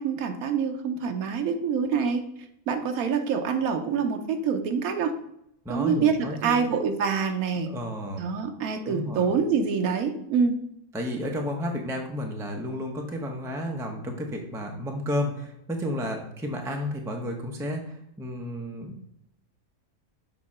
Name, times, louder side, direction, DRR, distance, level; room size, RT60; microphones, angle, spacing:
voice 1, 0.0-2.2 2.7-5.1 5.7-7.7 8.2-10.6, right 6 dB, 80° right, 5 dB, 1.2 m, -26 dB
voice 2, 5.6-6.7 7.6-8.2 8.8-9.3 10.9-19.0, equal, 5° right, 2 dB, 0.5 m, -32 dB
6.8 x 3.6 x 4.2 m, 0.78 s
omnidirectional pair, 1.5 m